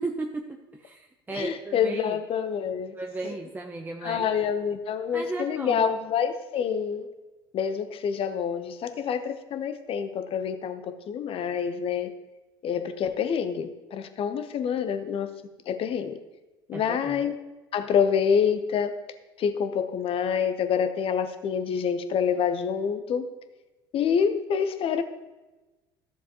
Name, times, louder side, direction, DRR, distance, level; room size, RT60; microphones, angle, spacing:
voice 1, 0.0-2.2 3.0-4.3 5.1-5.9 16.7-17.2, right 3 dB, 15° right, 2 dB, 0.8 m, -35 dB
voice 2, 1.3-2.9 3.2-3.3 4.0-7.1 7.5-12.1 12.6-15.3 15.7-16.2 16.7-17.3 17.7-18.9 19.4-23.2 23.9-25.0, left 7 dB, 45° left, 9 dB, 1.0 m, -27 dB
13.0 x 7.1 x 3.0 m, 1.1 s
hypercardioid pair, 65°, 13 cm